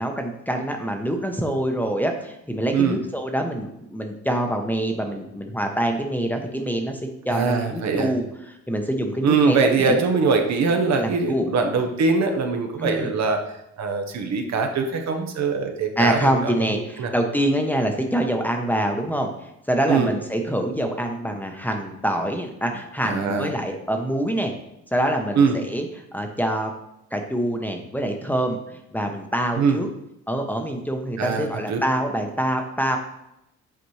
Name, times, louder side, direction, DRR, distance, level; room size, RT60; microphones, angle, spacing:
voice 1, 0.0-7.0 7.2-10.1 10.9-11.5 12.8-13.1 16.0-24.5 24.9-25.9 26.1-26.7 27.1-29.9 30.3-33.0, right 1 dB, 5° left, 3 dB, 0.8 m, -25 dB
voice 2, 7.3-8.1 9.2-13.4 13.8-16.5 17.0-17.1 19.9-20.1 23.0-23.5 25.4-25.6 29.6-29.8 31.2-31.8, right 4 dB, 65° right, 5 dB, 1.0 m, -22 dB
8.1 x 4.2 x 3.2 m, 0.85 s
cardioid pair, 90°, 30 cm